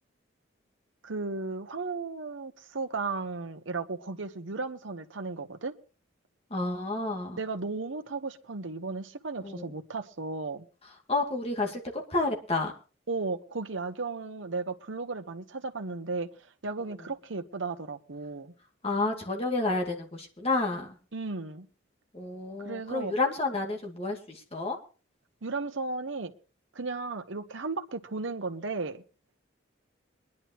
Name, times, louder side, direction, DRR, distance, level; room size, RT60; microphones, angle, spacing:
voice 1, 1.0-5.7 7.3-10.7 13.1-16.3 16.6-18.5 21.1-21.7 22.6-23.1 25.4-26.3 26.7-29.0, right 3 dB, 75° right, 8 dB, 1.0 m, -35 dB
voice 2, 6.5-7.4 9.4-9.7 11.1-12.7 18.8-21.0 22.1-24.8, left 3 dB, 30° left, 1 dB, 2.3 m, -30 dB
23.0 x 11.0 x 3.0 m, 0.36 s
head